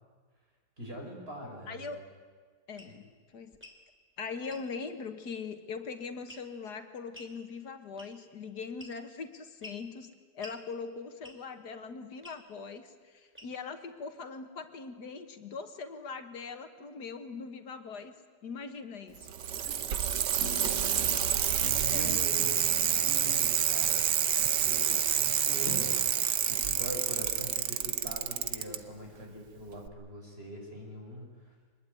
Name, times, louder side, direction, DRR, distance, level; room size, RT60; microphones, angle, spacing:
voice 1, 0.8-1.9 2.9-3.0 19.6-20.1 20.8-24.0 24.5-26.0 26.5-31.5, equal, 35° right, 0 dB, 5.8 m, -43 dB
voice 2, 1.7-2.0 2.7-3.1 3.3-3.6 4.2-18.1 18.4-19.3 21.9-22.2, left 5 dB, 75° left, 8 dB, 2.0 m, -41 dB
sound 1, 2.8-2.9 3.5-3.8 4.5-4.7 6.3-6.6 7.1-7.4 8.0-8.3 8.8-9.2 9.6-9.8 10.4-10.6 11.2-11.5 12.2-12.4 13.3-13.7, left 1 dB, 5° right, 2.7 m, -49 dB
Bicycle, 19.2-28.8 29.9-30.0, right 9 dB, 85° right, 1.6 m, -28 dB
sound 2, 20.4-21.3 21.6-25.2 25.7-25.9, left 4 dB, 50° left, 2.1 m, -45 dB
24.0 x 21.0 x 9.4 m, 1.5 s
omnidirectional pair, 1.8 m